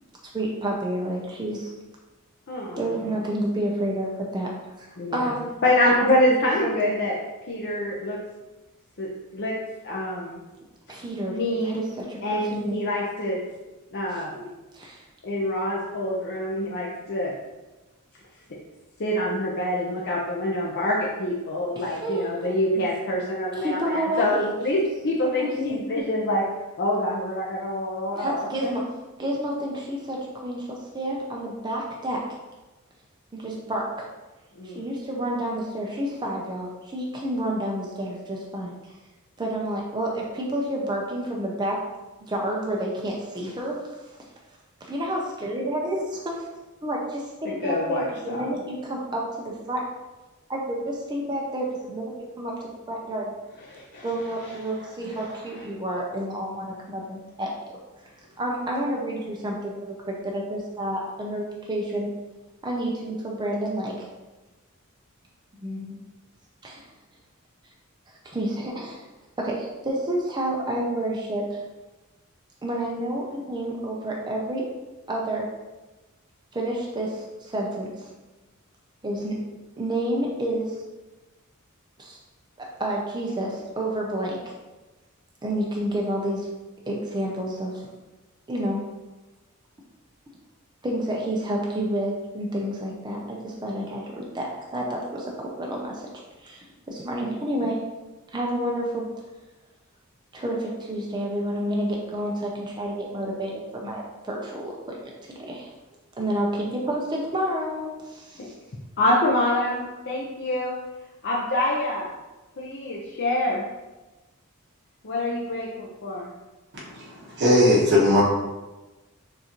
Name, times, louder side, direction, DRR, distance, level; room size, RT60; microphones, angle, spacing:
voice 1, 0.3-1.7 2.7-5.4 5.8-6.4 6.6-6.9 10.9-12.9 14.1-14.5 14.7-15.0 21.8-22.6 23.6-24.8 25.2-25.8 28.1-28.8 29.2-32.2 33.3-34.1 34.6-38.7 39.4-41.8 42.3-43.8 44.8-46.4 46.8-49.9 50.5-52.1 52.4-53.3 54.0-57.5 58.4-62.1 62.6-64.1 65.6-66.0 66.6-66.8 68.3-69.0 69.4-71.6 72.6-74.7 75.1-75.5 76.5-78.1 79.0-79.4 79.8-80.8 82.0-82.2 82.6-84.5 85.4-86.5 86.9-87.9 88.5-88.8 90.8-96.0 96.4-97.8 98.3-99.1 100.3-105.7 106.2-108.5, right 1 dB, 20° right, -2 dB, 0.6 m, -29 dB
voice 2, 2.5-3.3 5.0-5.2 5.6-7.1 7.5-8.2 9.0-9.6 9.8-10.4 11.3-11.8 12.2-13.4 13.9-14.4 15.2-17.3 19.0-26.5 26.8-28.7 34.6-34.9 47.4-48.5 53.7-54.1 55.1-55.3 108.4-108.5 109.0-110.7 111.2-112.1 112.6-113.6 115.0-116.3, left 1 dB, 55° left, -4 dB, 0.6 m, -26 dB
voice 3, 116.7-118.2, left 1 dB, 55° right, -5 dB, 1.3 m, -19 dB
6.5 x 2.6 x 3.0 m, 1.1 s
head